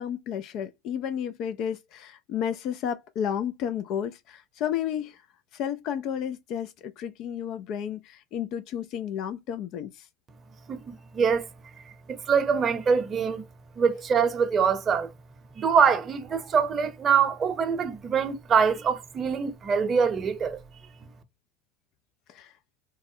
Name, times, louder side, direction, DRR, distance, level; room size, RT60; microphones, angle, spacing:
voice 1, 0.0-5.2 5.5-10.1 22.3-22.5, left 9 dB, 55° left, 0.3 m, -32 dB
voice 2, 11.1-11.5 12.1-13.4 13.8-15.1 15.6-20.6, right 6 dB, 35° right, 0.7 m, -24 dB
3.4 x 2.1 x 2.6 m
supercardioid pair, 110°, 0 cm